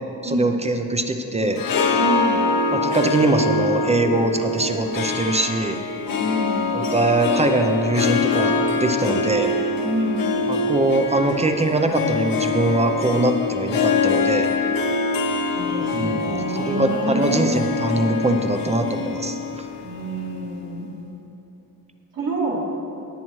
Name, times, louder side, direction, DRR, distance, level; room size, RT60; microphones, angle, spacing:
voice 1, 0.2-1.6 2.7-5.8 6.7-9.5 10.5-14.5 15.9-19.4, right 2 dB, 20° right, 5 dB, 0.5 m, -22 dB
Harp, 1.4-20.8, left 4 dB, 70° left, 0.9 m, -24 dB
voice 2, 1.9-2.4 6.1-6.7 9.0-9.3 9.8-10.3 15.5-17.6 19.8-20.9 22.1-22.6, right 1 dB, 65° right, -6 dB, 2.5 m, -27 dB
18.0 x 8.7 x 3.1 m, 2.8 s
wide cardioid pair, 150°, 35 cm